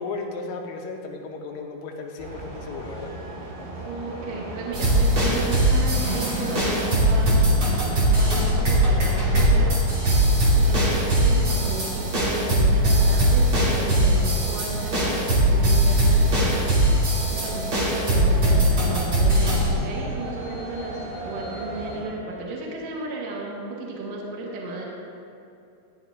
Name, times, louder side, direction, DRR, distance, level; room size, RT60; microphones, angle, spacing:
voice 1, 0.0-3.1, left 3 dB, 85° left, 1 dB, 3.4 m, -34 dB
sound 1, 2.2-22.0, right 1 dB, 60° right, 3.6 m, -36 dB
voice 2, 3.9-9.8 10.6-16.7 17.3-24.8, right 2 dB, 80° right, -2 dB, 2.0 m, -34 dB
sound 2, 4.7-19.7, right 1 dB, 40° right, 2.0 m, -20 dB
sound 3, 11.5-17.4, left 1 dB, 70° left, 2.6 m, -38 dB
14.5 x 10.5 x 2.4 m, 2.6 s
omnidirectional pair, 5.8 m